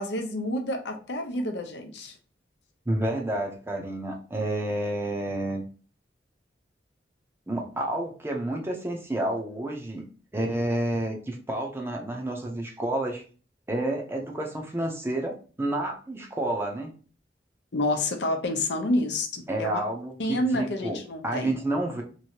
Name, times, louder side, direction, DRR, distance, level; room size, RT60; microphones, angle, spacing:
voice 1, 0.0-2.1 17.7-19.8 20.2-21.6, left 1 dB, 75° left, 4 dB, 0.6 m, -28 dB
voice 2, 2.9-5.6 7.5-10.1 10.3-13.2 13.7-16.9 19.5-21.0 21.2-22.0, right 1 dB, 15° right, 1 dB, 0.6 m, -29 dB
3.0 x 2.6 x 2.8 m, 0.38 s
head